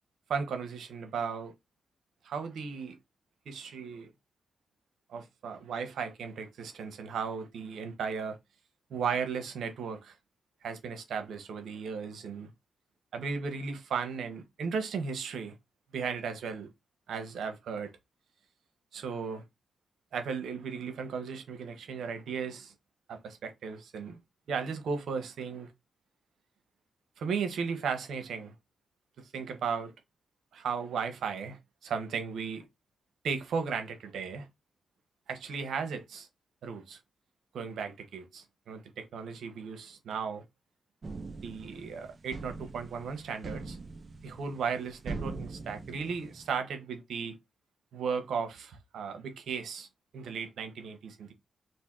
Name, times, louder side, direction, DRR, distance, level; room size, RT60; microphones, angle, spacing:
voice 1, 0.3-1.5 2.2-3.0 3.5-4.1 5.1-8.4 8.9-10.1 10.6-12.5 13.1-15.6 15.9-16.7 17.1-17.9 18.9-19.4 20.1-22.7 23.1-24.2 24.5-25.7 27.2-28.5 29.2-29.9 30.5-32.6 33.2-34.5 35.3-36.3 36.6-37.0 37.5-40.4 41.4-43.8 44.2-47.4 47.9-49.9 50.1-51.3, right 6 dB, 80° right, 0.8 m, -36 dB
sound 1, 41.0-46.6, right 3 dB, 45° right, 0.6 m, -42 dB
2.7 x 2.6 x 3.6 m
cardioid pair, 60°, 0 cm